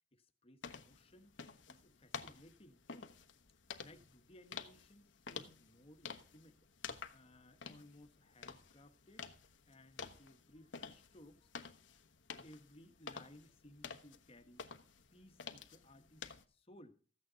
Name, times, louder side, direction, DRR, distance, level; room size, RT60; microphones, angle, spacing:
voice 1, 0.1-1.4 1.7-3.1 3.8-6.6 7.1-9.3 9.6-11.7 12.3-14.7 15.1-17.0, left 1 dB, 30° left, 1.3 m, -61 dB
sound 1, 0.6-16.4, left 6 dB, 75° left, 1.1 m, -51 dB
14.5 x 8.9 x 3.9 m
head